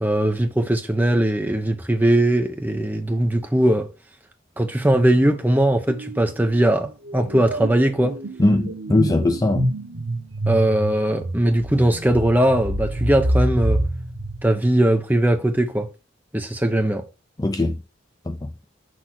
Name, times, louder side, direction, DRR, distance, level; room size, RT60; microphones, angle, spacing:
voice 1, 0.0-3.9 4.6-8.2 10.5-13.8 14.4-15.9 16.3-17.1, right 1 dB, 10° right, 0.8 m, -20 dB
sound 1, 5.9-6.2 6.5-15.2, right 1 dB, 90° right, 1.2 m, -27 dB
voice 2, 8.4-9.7 17.4-17.8 18.3-18.5, left 2 dB, 20° left, 0.4 m, -20 dB
6.3 x 3.6 x 5.9 m
head